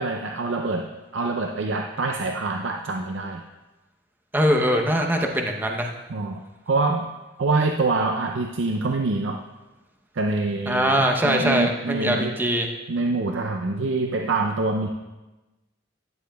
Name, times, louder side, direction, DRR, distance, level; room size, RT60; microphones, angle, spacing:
voice 1, 0.0-3.4 6.1-6.4 6.7-7.1 7.4-9.4 10.1-12.3 12.9-14.9, right 3 dB, 70° right, 3 dB, 0.5 m, -25 dB
voice 2, 4.3-5.9 10.7-12.7, equal, 10° right, 1 dB, 0.7 m, -22 dB
13.5 x 9.6 x 2.3 m, 1.1 s
head